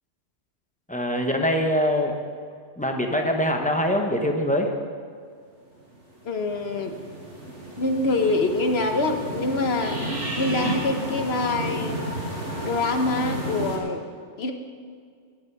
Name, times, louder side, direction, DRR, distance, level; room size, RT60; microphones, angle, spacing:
voice 1, 0.9-2.1 2.8-4.7, equal, 5° left, 2 dB, 1.0 m, -23 dB
sound 1, 5.9-13.8, right 1 dB, 65° right, 3.4 m, -32 dB
voice 2, 6.2-7.0 7.8-10.0 10.4-12.0 12.6-14.0 14.4-14.5, left 2 dB, 55° left, 5 dB, 1.2 m, -25 dB
13.5 x 11.0 x 4.8 m, 2.1 s
omnidirectional pair, 1.3 m